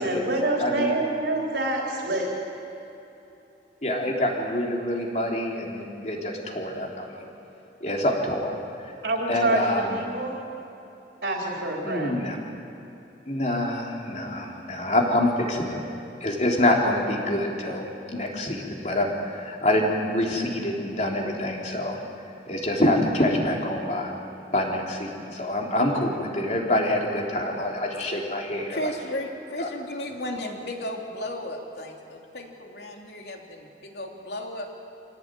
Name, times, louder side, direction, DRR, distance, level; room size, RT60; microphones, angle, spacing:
voice 1, 0.0-2.3 9.0-10.3 11.2-12.2, right 2 dB, 85° right, -1 dB, 4.0 m, -26 dB
voice 2, 0.6-0.9 3.8-7.3 7.8-8.5 8.8-8.9 9.3-10.0 11.8-12.4 13.3-15.8 16.2-22.0 22.5-24.1 24.5-28.8 29.6-29.7, left 1 dB, 40° left, -1 dB, 3.5 m, -26 dB
voice 3, 28.7-34.7, left 1 dB, 75° left, 1 dB, 3.3 m, -34 dB
26.0 x 17.5 x 9.2 m, 3.0 s
head